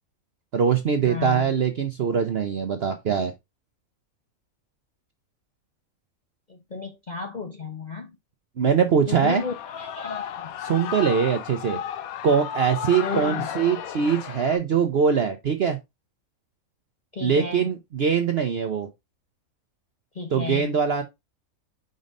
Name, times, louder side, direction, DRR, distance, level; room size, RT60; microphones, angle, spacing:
voice 1, 0.5-3.3 8.6-9.4 10.6-11.8 12.2-15.8 17.2-18.9 20.3-21.0, right 7 dB, 55° right, 0.8 m, -22 dB
voice 2, 1.0-1.5 6.5-8.2 9.1-10.5 13.0-13.5 17.1-17.7 20.1-20.7, left 4 dB, 35° left, 0.8 m, -33 dB
Shout / Cheering, 9.2-14.6, left 9 dB, 75° left, 1.1 m, -34 dB
5.3 x 3.9 x 5.2 m
omnidirectional pair, 1.5 m